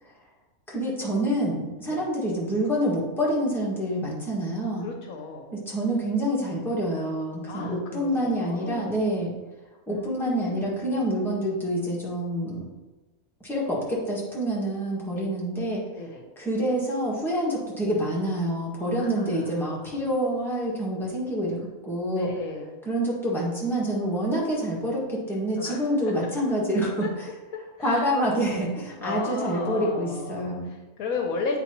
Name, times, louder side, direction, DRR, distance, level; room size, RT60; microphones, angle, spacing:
voice 1, 0.7-4.9 5.5-9.3 9.9-12.6 13.4-15.8 16.4-22.3 22.8-27.1 27.8-30.7, right 1 dB, ahead, -6 dB, 1.5 m, -27 dB
voice 2, 4.8-5.5 7.5-9.0 9.9-10.9 15.1-15.3 16.0-16.3 19.0-20.0 22.1-22.8 25.5-26.3 27.0-27.1 27.5-28.1 29.0-31.6, left 4 dB, 75° left, 3 dB, 1.1 m, -35 dB
8.5 x 4.1 x 2.9 m, 1.1 s
omnidirectional pair, 1.6 m